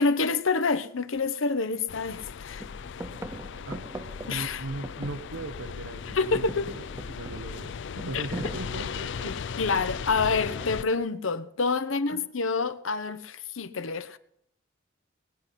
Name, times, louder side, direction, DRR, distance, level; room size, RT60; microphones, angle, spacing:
voice 1, 0.0-2.6 4.3-4.6 6.1-6.7 8.1-8.5 9.2-14.2, left 4 dB, 85° left, 1.0 m, -27 dB
sound 1, 1.2-1.3 1.7-2.3 2.6-5.7 6.0-9.6 10.6-11.1, right 1 dB, 15° right, 0.5 m, -42 dB
sound 2, 1.9-10.8, left 6 dB, 65° left, 0.5 m, -37 dB
voice 2, 4.2-9.3 12.1-12.2, right 2 dB, 75° right, 0.9 m, -39 dB
19.5 x 9.9 x 5.8 m
head